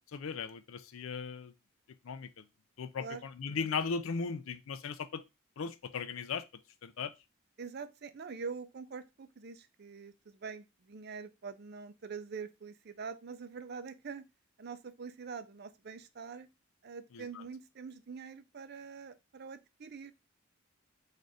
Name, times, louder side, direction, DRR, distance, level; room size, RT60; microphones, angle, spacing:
voice 1, 0.1-1.5 2.0-2.3 2.8-5.2 5.6-6.4 6.8-7.1 17.1-17.2, left 5 dB, 80° left, 0.4 m, -37 dB
voice 2, 7.6-14.3 14.6-16.5 16.8-20.1, right 5 dB, 50° right, 0.5 m, -44 dB
4.3 x 2.5 x 4.7 m
head